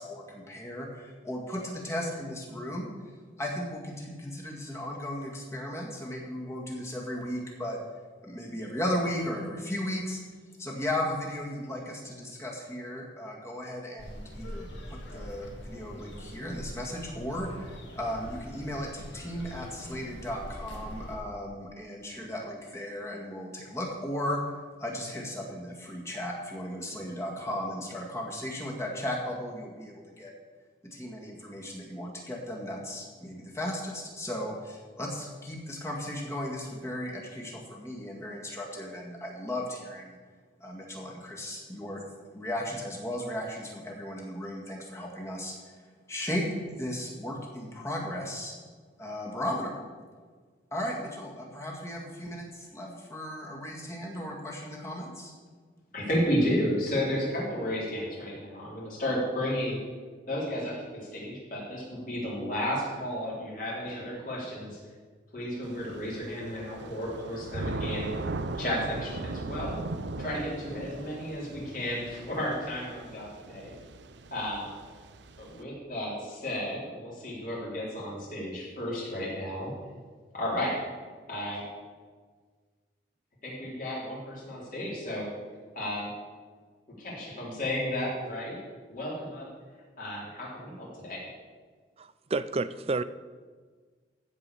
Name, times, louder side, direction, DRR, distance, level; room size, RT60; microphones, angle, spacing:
voice 1, 0.0-2.9 3.4-7.8 8.2-10.2 10.6-24.4 24.8-30.3 30.9-40.2 40.6-42.0 42.3-45.7 46.1-48.5 49.0-49.7 50.7-55.3, left 1 dB, 15° left, -2 dB, 1.9 m, -36 dB
sound 1, 14.0-21.2, equal, 85° left, 2.4 m, -43 dB
voice 2, 55.9-59.8 60.3-64.8 65.3-68.1 68.6-69.8 70.2-73.7 74.3-74.7 75.4-79.7 80.3-80.8 81.3-81.7 83.4-85.3 85.7-86.1 87.0-88.6 88.9-89.5 90.0-91.2, equal, 45° left, -5 dB, 4.0 m, -33 dB
Thunder / Rain, 65.7-75.6, right 2 dB, 75° right, 0.6 m, -39 dB
voice 3, 92.0-93.0, right 3 dB, 35° right, 14 dB, 0.4 m, -30 dB
15.0 x 5.0 x 7.0 m, 1.5 s
head